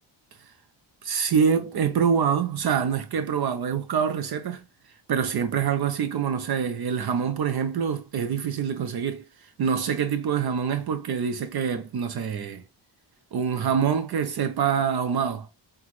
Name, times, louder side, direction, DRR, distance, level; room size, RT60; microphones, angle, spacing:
voice 1, 1.0-4.6 5.1-12.6 13.3-15.5, right 7 dB, 60° right, 0.6 m, -25 dB
5.8 x 2.3 x 3.0 m
wide cardioid pair, 120°, 42 cm